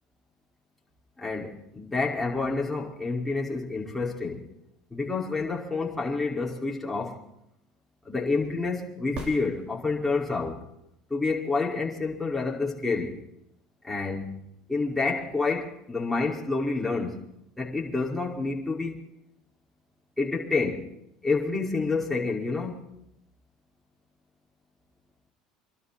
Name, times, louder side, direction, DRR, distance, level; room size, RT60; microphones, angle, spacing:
voice 1, 1.2-4.5 4.9-7.2 8.1-10.6 11.1-13.2 13.8-14.4 14.7-17.2 17.6-19.0 20.2-20.9 21.2-22.8, left 3 dB, 5° left, 5.2 m, -28 dB
sound 1, 9.1-10.3 14.2-14.3, right 2 dB, 50° right, 5.4 m, -41 dB
26.0 x 12.5 x 4.3 m
supercardioid pair, 90°, 2 cm